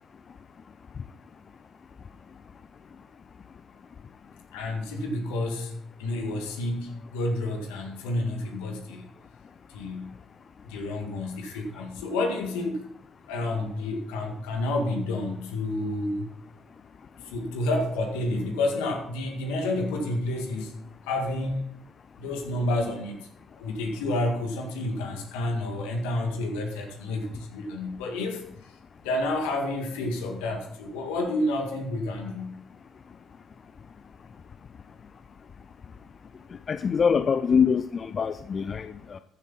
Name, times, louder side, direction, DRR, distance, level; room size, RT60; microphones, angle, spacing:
voice 1, 4.5-5.7 6.0-9.1 9.7-10.1 10.7-12.9 13.3-16.3 17.2-20.7 21.1-21.6 22.2-23.3 23.6-28.4 29.0-32.6, left 2 dB, 75° left, 4 dB, 1.9 m, -29 dB
voice 2, 36.7-39.2, left 6 dB, 45° left, 13 dB, 0.5 m, -24 dB
14.0 x 7.2 x 4.2 m, 0.74 s
hypercardioid pair, 50°, 0 cm